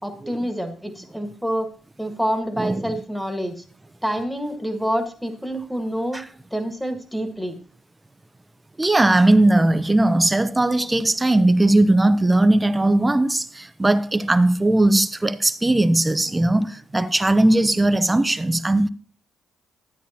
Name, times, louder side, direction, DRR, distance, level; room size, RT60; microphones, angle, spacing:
voice 1, 0.0-1.7 2.0-3.6 4.0-6.2 6.5-7.6 16.9-17.2, equal, ahead, 1.6 m, -27 dB
voice 2, 8.8-18.9, right 2 dB, 15° right, 0.6 m, -18 dB
12.5 x 8.8 x 2.9 m
cardioid pair, 80°, 0 cm